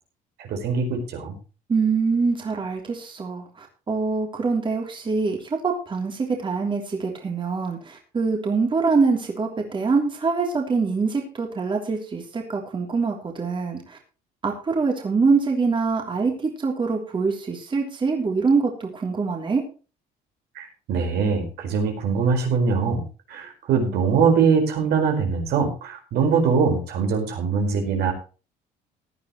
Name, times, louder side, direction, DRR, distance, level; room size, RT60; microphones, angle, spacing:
voice 1, 0.4-1.4 20.5-28.1, right 5 dB, 70° right, 3 dB, 4.8 m, -22 dB
voice 2, 1.7-14.0 14.4-19.6, right 4 dB, 30° right, 1 dB, 3.1 m, -24 dB
17.0 x 11.0 x 3.1 m, 0.34 s
cardioid pair, 110°, 17 cm